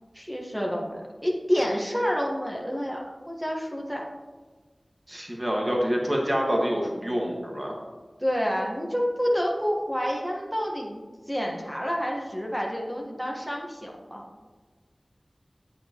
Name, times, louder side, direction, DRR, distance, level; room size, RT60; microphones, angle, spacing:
voice 1, 0.1-4.1 8.2-14.2, equal, 5° right, 0 dB, 1.3 m, -28 dB
voice 2, 5.1-7.7, equal, 30° right, -1 dB, 1.6 m, -26 dB
9.1 x 8.2 x 3.0 m, 1.3 s
wide cardioid pair, 55°, 0 cm